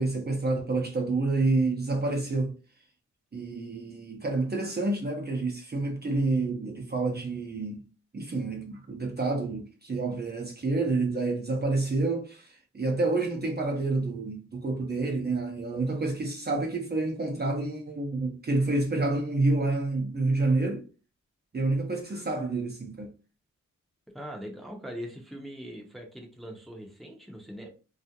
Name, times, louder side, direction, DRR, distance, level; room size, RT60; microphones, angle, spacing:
voice 1, 0.0-2.5 3.3-7.8 8.1-20.8 21.5-23.1, right 3 dB, 35° right, 0.6 m, -28 dB
voice 2, 24.1-27.7, equal, ahead, 0.7 m, -41 dB
2.3 x 2.0 x 2.8 m
cardioid pair, 45°, 31 cm